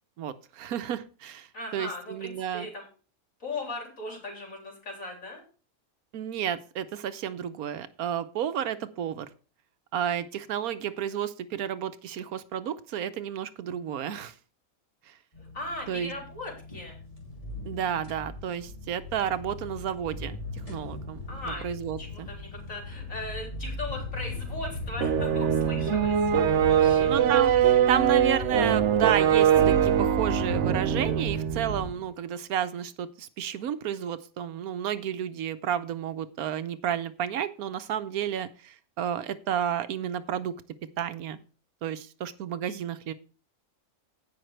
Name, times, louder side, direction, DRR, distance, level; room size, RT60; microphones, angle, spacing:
voice 1, 0.2-1.5 1.7-2.7 6.1-9.3 9.9-14.3 15.9-16.1 17.6-20.4 20.7-21.2 21.6-22.3 27.0-40.5 41.0-41.4 41.8-43.1, right 9 dB, 80° right, 12 dB, 1.2 m, -31 dB
voice 2, 1.5-2.9 3.4-5.4 15.5-17.0 21.3-21.7 22.0-26.3 26.7-27.2, left 2 dB, 65° left, 0 dB, 4.0 m, -38 dB
sound 1, 15.3-31.9, left 3 dB, 25° left, 3.1 m, -38 dB
sound 2, 25.0-31.9, right 9 dB, 60° right, 1.0 m, -23 dB
17.0 x 5.9 x 3.2 m, 0.37 s
omnidirectional pair, 1.5 m